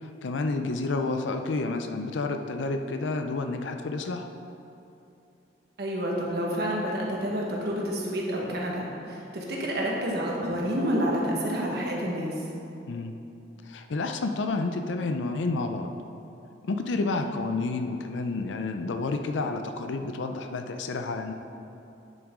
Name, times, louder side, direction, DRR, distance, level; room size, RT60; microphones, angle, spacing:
voice 1, 0.0-4.3 12.9-13.2 13.7-15.9 16.6-21.3, left 3 dB, 80° left, 6 dB, 0.5 m, -30 dB
voice 2, 5.8-12.4 17.2-17.3, equal, 60° right, -2 dB, 1.4 m, -29 dB
10.5 x 6.0 x 3.7 m, 2.8 s
head